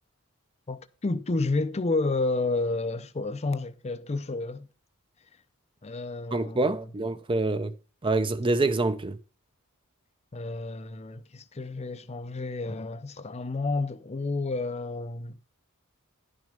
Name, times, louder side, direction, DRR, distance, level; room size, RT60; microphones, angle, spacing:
voice 1, 0.7-4.7 5.8-6.8 10.3-15.4, left 3 dB, 30° left, 0.5 m, -30 dB
voice 2, 6.3-7.7 8.0-9.2, right 2 dB, 25° right, 0.6 m, -26 dB
11.0 x 6.2 x 5.1 m
head